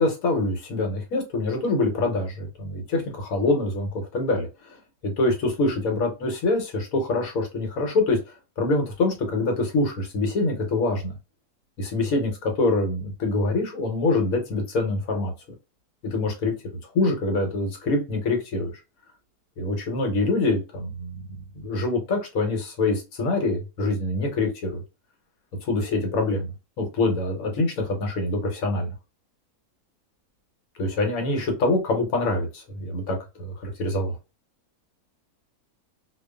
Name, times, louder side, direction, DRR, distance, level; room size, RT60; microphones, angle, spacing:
voice 1, 0.0-4.8 5.0-8.2 8.6-11.2 11.8-15.3 16.1-16.5 16.9-18.8 19.6-21.1 21.5-24.8 25.6-26.5 26.8-28.9 30.8-34.1, left 2 dB, 65° left, 2 dB, 1.2 m, -25 dB
2.5 x 2.3 x 2.2 m, 0.27 s
omnidirectional pair, 1.6 m